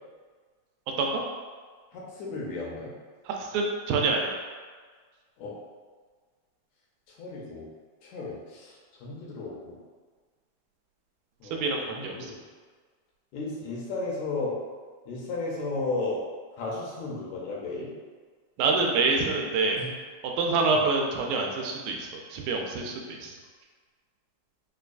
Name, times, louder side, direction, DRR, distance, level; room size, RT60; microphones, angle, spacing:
voice 1, 1.9-2.9 5.4-5.5 7.2-7.7 8.0-8.8 9.0-9.8 11.4-12.3 13.3-14.6 15.1-16.2 16.6-17.9 19.8-19.9 20.7-20.9, left 3 dB, 80° left, -4 dB, 1.9 m, -34 dB
voice 2, 3.3-4.4 11.5-12.3 18.6-19.8 20.4-23.4, right 3 dB, 85° right, 1 dB, 2.0 m, -26 dB
4.9 x 2.2 x 2.4 m, 1.5 s
omnidirectional pair, 3.3 m